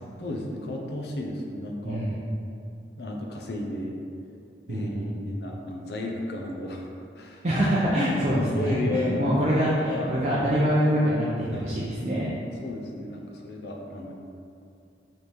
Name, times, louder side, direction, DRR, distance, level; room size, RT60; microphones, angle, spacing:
voice 1, 0.2-2.0 3.0-4.0 4.7-4.9 5.3-6.9 7.2-7.4 8.2-9.4 9.8-10.1 11.5-11.7 12.6-14.1, left 1 dB, 65° left, 1 dB, 0.5 m, -33 dB
voice 2, 1.8-2.2 4.7-5.2 7.4-12.3, equal, 40° right, -8 dB, 0.5 m, -25 dB
3.3 x 3.3 x 4.2 m, 2.5 s
head